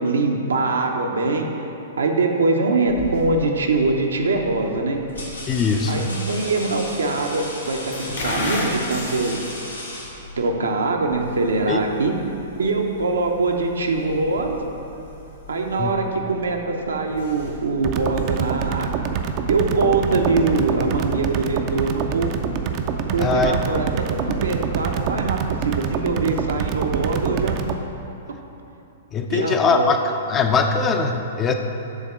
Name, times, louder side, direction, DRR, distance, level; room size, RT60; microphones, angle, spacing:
voice 1, 0.0-1.5 2.0-5.0 5.9-9.4 10.4-12.1 12.6-14.6 15.5-19.0 19.5-22.3 23.1-27.6 29.3-29.9, right 3 dB, 75° right, 2 dB, 0.7 m, -23 dB
sound 1, 2.9-19.1, left 1 dB, 70° left, 1.5 m, -37 dB
sound 2, 3.5-3.8 4.6-10.6, left 1 dB, 85° left, 1.2 m, -36 dB
voice 2, 5.5-6.1 11.7-11.8 15.8-15.9 23.2-23.5 29.1-30.0 30.3-31.5, left 5 dB, 25° left, 5 dB, 0.4 m, -21 dB
sound 3, 17.8-27.8, right 7 dB, 40° right, 0.4 m, -26 dB
7.2 x 3.5 x 5.6 m, 2.9 s
figure-of-eight pair, 110°, 0 cm